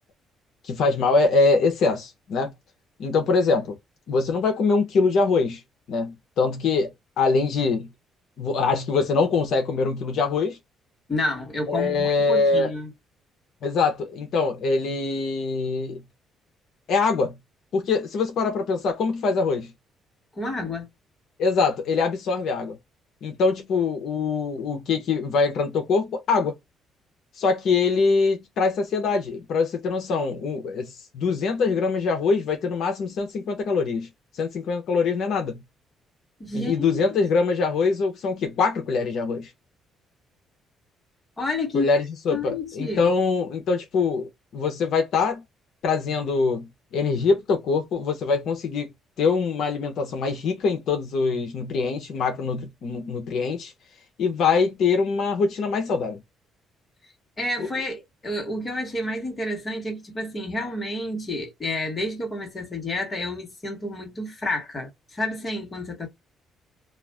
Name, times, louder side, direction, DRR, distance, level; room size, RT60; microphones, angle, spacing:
voice 1, 0.6-2.5 3.0-3.7 4.1-5.6 5.9-6.9 7.2-7.9 8.4-10.6 11.7-12.7 13.6-16.0 16.9-17.4 17.7-19.7 21.4-22.8 23.2-26.5 27.4-34.1 34.3-35.6 36.5-39.5 41.7-45.4 45.8-48.9 49.2-53.7 54.2-56.2 57.6-57.7, left 4 dB, 60° left, 0.7 m, -23 dB
voice 2, 11.1-12.9 20.4-20.9 36.4-37.0 41.4-41.9 42.3-43.1 57.4-66.1, left 2 dB, 20° left, 1.1 m, -30 dB
2.4 x 2.4 x 3.3 m
cardioid pair, 150°, 0 cm